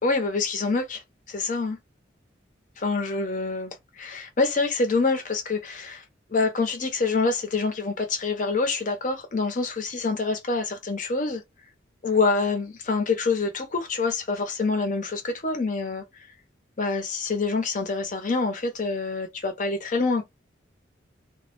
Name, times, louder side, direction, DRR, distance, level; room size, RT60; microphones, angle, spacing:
voice 1, 0.0-1.0 1.3-1.8 2.8-6.0 6.3-11.4 12.0-16.0 16.8-20.2, left 3 dB, 45° left, 0.6 m, -26 dB
2.1 x 2.0 x 2.9 m
head